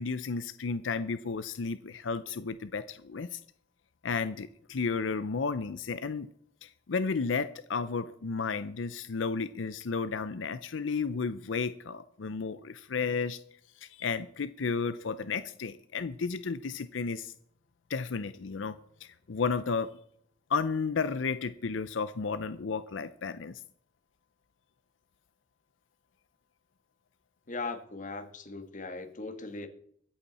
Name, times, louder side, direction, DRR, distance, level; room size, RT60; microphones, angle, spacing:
voice 1, 0.0-3.4 4.0-6.3 6.6-13.4 13.8-17.3 17.9-19.9 20.5-23.6, left 5 dB, 85° left, 0.6 m, -33 dB
voice 2, 27.5-29.7, left 3 dB, 45° left, 1.8 m, -39 dB
22.5 x 8.2 x 4.2 m
head